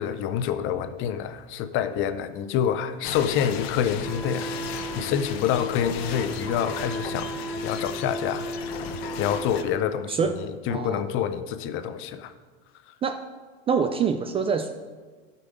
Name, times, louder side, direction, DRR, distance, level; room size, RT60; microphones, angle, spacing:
voice 1, 0.0-4.5 4.9-8.5 9.2-12.3, left 9 dB, 40° left, 11 dB, 0.7 m, -27 dB
sound 1, 3.0-9.6, left 7 dB, 80° left, 0.9 m, -36 dB
Wind instrument woodwind instrument, 4.0-9.9, right 2 dB, ahead, 0.9 m, -35 dB
voice 2, 10.7-11.0 13.0-13.2 13.7-14.7, right 6 dB, 20° right, 8 dB, 0.3 m, -25 dB
12.0 x 5.8 x 5.0 m, 1.4 s
supercardioid pair, 130°, 30 cm